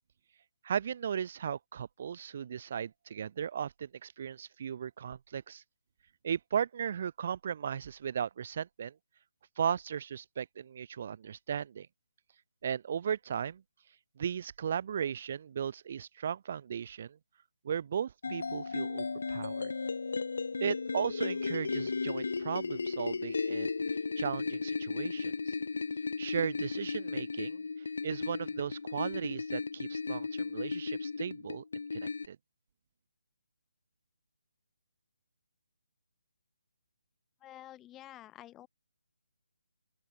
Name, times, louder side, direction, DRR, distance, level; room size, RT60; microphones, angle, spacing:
voice 1, 0.6-5.6 6.2-8.9 9.6-11.9 12.6-13.6 14.2-17.2 17.6-19.7 20.6-23.7 24.2-25.3 26.2-31.6 31.9-32.4, right 8 dB, 45° right, 0.5 m, -36 dB
sound 1, 18.2-32.3, left 4 dB, 75° left, 2.2 m, -35 dB
voice 2, 37.4-38.7, left 14 dB, 10° left, 3.5 m, -50 dB
open air
hypercardioid pair, 160°, 0 cm